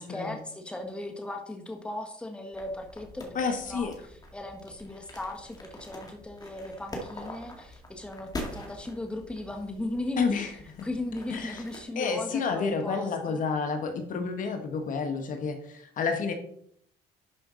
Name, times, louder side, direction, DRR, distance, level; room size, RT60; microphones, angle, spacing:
voice 1, 0.0-3.4 3.7-3.9 4.3-10.6 10.8-13.4, left 1 dB, 5° left, 3 dB, 1.4 m, -37 dB
sound 1, 2.5-11.8, left 1 dB, 20° left, 2.1 m, -44 dB
voice 2, 3.3-3.9 10.2-10.5 10.8-10.9 11.3-11.6 11.9-16.3, left 5 dB, 50° left, 6 dB, 1.4 m, -30 dB
11.0 x 5.3 x 3.9 m, 0.68 s
cardioid pair, 110°, 17 cm